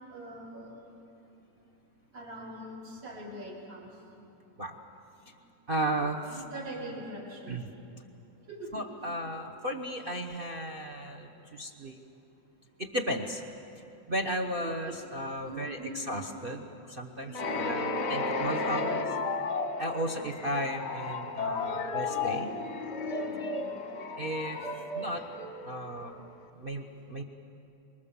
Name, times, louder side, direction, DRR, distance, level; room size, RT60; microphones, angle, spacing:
voice 1, 0.1-0.8 2.1-3.9 5.9-7.6 8.5-8.9 14.6-14.9 15.4-16.0 17.2-17.7 20.0-20.2 23.2-23.8, right 1 dB, 60° right, -4 dB, 4.4 m, -43 dB
voice 2, 5.7-6.4 7.5-7.6 8.7-12.0 12.8-13.4 14.1-19.2 19.8-22.5 24.2-24.6 24.9-25.3 25.6-26.2 26.5-27.2, right 1 dB, 35° right, 4 dB, 0.9 m, -34 dB
sound 1, 17.3-26.1, left 3 dB, 45° left, 1.0 m, -33 dB
25.5 x 22.5 x 7.1 m, 2.8 s
omnidirectional pair, 2.3 m